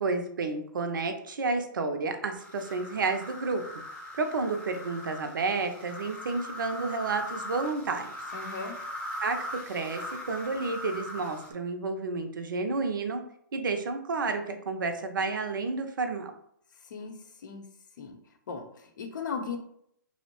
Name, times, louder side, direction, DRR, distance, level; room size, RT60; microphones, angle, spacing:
voice 1, 0.0-8.1 9.2-13.2 13.5-16.3, right 3 dB, 75° right, 6 dB, 0.5 m, -31 dB
sound 1, 2.4-11.5, left 1 dB, 10° left, 0.7 m, -40 dB
voice 2, 8.3-8.8 16.8-17.6 18.0-18.2 18.5-19.6, left 5 dB, 65° left, 5 dB, 0.6 m, -37 dB
2.7 x 2.0 x 2.8 m, 0.69 s
hypercardioid pair, 130°, 11 cm